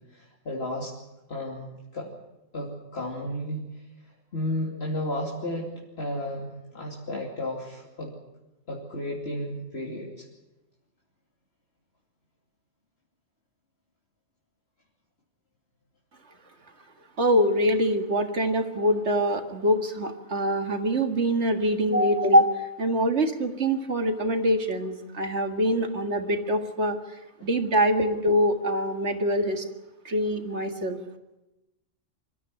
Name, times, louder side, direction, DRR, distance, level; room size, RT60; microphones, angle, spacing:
voice 1, 0.1-0.9 1.3-2.1 2.5-3.6 4.3-8.1 8.7-10.3 27.4-27.5, left 1 dB, 55° left, -2 dB, 3.0 m, -33 dB
voice 2, 17.2-27.0 27.4-29.6 30.1-31.0, equal, 60° right, 6 dB, 2.2 m, -24 dB
25.0 x 14.0 x 10.0 m, 0.99 s
omnidirectional pair, 1.3 m